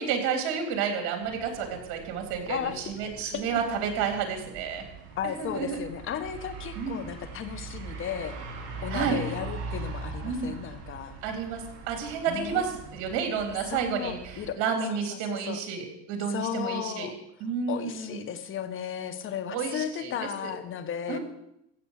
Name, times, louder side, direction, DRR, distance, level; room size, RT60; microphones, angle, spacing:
voice 1, 0.0-4.8 5.2-5.8 6.8-7.0 8.9-9.2 10.2-10.5 11.2-17.1 17.4-18.2 19.5-20.1 20.4-20.5 21.1-21.2, right 6 dB, 65° right, 4 dB, 3.5 m, -31 dB
sound 1, 1.2-14.5, right 3 dB, 50° right, 4.3 m, -41 dB
voice 2, 2.5-2.8 3.2-3.6 5.1-8.4 8.8-11.2 12.3-12.7 13.7-14.6 14.9-15.6 16.3-17.2 17.7-21.2, left 9 dB, 40° left, 11 dB, 1.4 m, -35 dB
15.5 x 7.5 x 6.6 m, 0.79 s
supercardioid pair, 120°, 32 cm